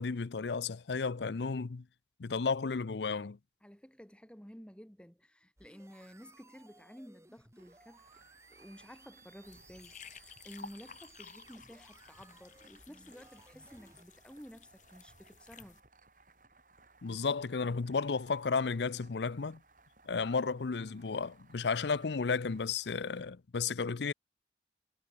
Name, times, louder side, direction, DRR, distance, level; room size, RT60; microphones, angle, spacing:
voice 1, 0.0-1.8 2.2-3.4 17.0-19.6 20.1-24.1, left 5 dB, 75° left, 0.6 m, -33 dB
voice 2, 3.6-8.0 8.5-15.8, equal, 5° left, 1.8 m, -53 dB
sound 1, 5.6-14.0, right 3 dB, 15° right, 7.4 m, -61 dB
sound 2, 7.6-23.2, right 3 dB, 45° right, 7.9 m, -64 dB
sound 3, 9.5-15.8, left 6 dB, 45° left, 4.9 m, -54 dB
head